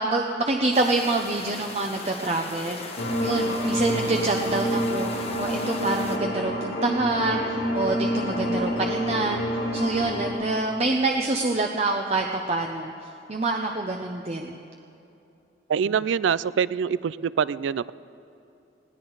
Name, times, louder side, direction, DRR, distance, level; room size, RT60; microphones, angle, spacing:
voice 1, 0.0-9.5 9.7-12.9 13.3-14.6, right 2 dB, 35° right, 2 dB, 0.7 m, -26 dB
sound 1, 0.7-6.2, left 3 dB, 35° left, 1.0 m, -39 dB
sound 2, 3.0-10.3, equal, 85° left, 3.2 m, -27 dB
voice 2, 15.7-17.9, right 7 dB, 80° right, 18 dB, 0.3 m, -25 dB
20.0 x 17.5 x 4.0 m, 2.8 s
head